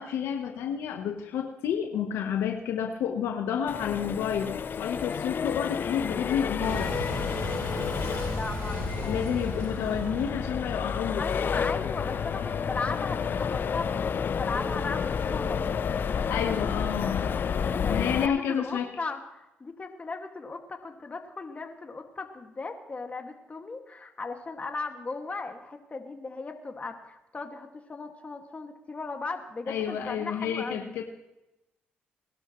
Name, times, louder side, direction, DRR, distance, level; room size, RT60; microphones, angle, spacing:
voice 1, 0.0-7.0 9.1-11.3 16.1-17.3 17.9-18.9 29.7-31.0, left 8 dB, 80° left, 5 dB, 1.0 m, -30 dB
Accelerating revving vroom, 3.7-18.3, left 7 dB, 55° left, 0.5 m, -30 dB
voice 2, 5.8-6.1 8.3-10.0 11.2-15.6 17.6-31.0, left 3 dB, 35° left, 4 dB, 2.0 m, -37 dB
Boom, 6.6-11.8, right 1 dB, 70° right, 6.0 m, -36 dB
Wind instrument woodwind instrument, 12.0-14.2 14.5-17.6, equal, 15° right, 5.1 m, -44 dB
20.5 x 12.0 x 3.1 m, 0.97 s
supercardioid pair, 60°, 4 cm